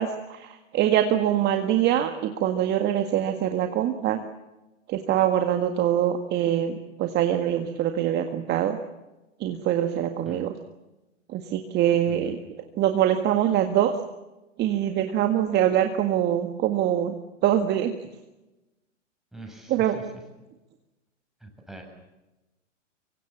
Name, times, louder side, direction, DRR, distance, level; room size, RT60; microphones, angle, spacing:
voice 1, 0.0-4.2 4.9-8.8 9.4-10.5 11.3-12.4 12.8-14.0 14.6-17.1 17.4-17.9 19.7-20.0, right 11 dB, 25° right, 6 dB, 1.8 m, -24 dB
voice 2, 12.1-12.4 19.3-20.0 21.4-21.8, right 2 dB, ahead, 1 dB, 7.4 m, -43 dB
25.5 x 24.0 x 7.4 m, 1.0 s
hypercardioid pair, 120°, 38 cm